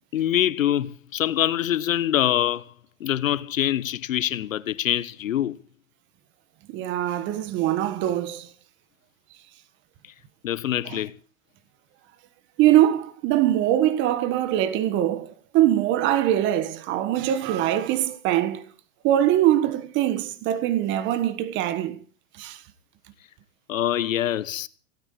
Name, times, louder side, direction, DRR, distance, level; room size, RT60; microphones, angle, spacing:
voice 1, 0.1-2.7 3.0-5.6 10.4-11.1 23.7-24.7, left 11 dB, 80° left, 1.3 m, -24 dB
voice 2, 6.7-8.5 10.9-11.0 12.6-18.6 19.0-22.0 22.4-22.6, right 12 dB, 30° right, 1.6 m, -22 dB
17.5 x 9.2 x 8.3 m
hypercardioid pair, 145°, 39 cm